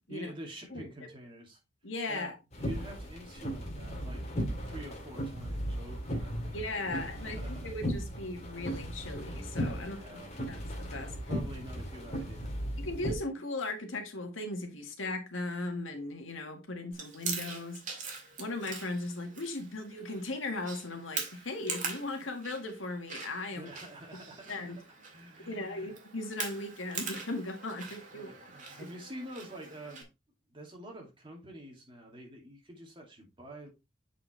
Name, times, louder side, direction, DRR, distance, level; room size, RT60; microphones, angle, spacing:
voice 1, 0.1-1.6 2.1-4.2 4.6-6.6 6.9-7.7 9.8-10.3 11.3-12.6 23.5-24.5 25.1-25.9 28.1-30.1 30.5-33.7, right 1 dB, 25° right, 2.6 m, -47 dB
voice 2, 1.8-2.4 6.5-11.2 12.8-17.8 18.4-23.7 24.5-24.8 25.4-28.3 28.8-28.9, left 2 dB, 90° left, 1.8 m, -38 dB
sound 1, 2.5-13.2, equal, 35° left, 2.2 m, -37 dB
Chewing mastication, 16.9-30.0, right 5 dB, 40° right, 2.0 m, -43 dB
7.8 x 5.1 x 3.3 m
head